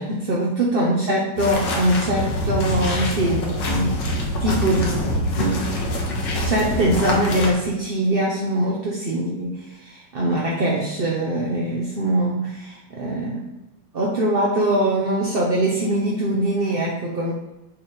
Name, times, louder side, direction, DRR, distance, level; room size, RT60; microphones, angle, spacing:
voice 1, 0.0-4.0 4.4-5.0 5.4-5.7 6.4-13.5 13.9-17.3, right 1 dB, 45° right, -3 dB, 0.8 m, -22 dB
sound 1, 1.4-7.5, left 1 dB, 70° left, 1.9 m, -25 dB
10.0 x 3.4 x 4.4 m, 0.96 s
omnidirectional pair, 2.0 m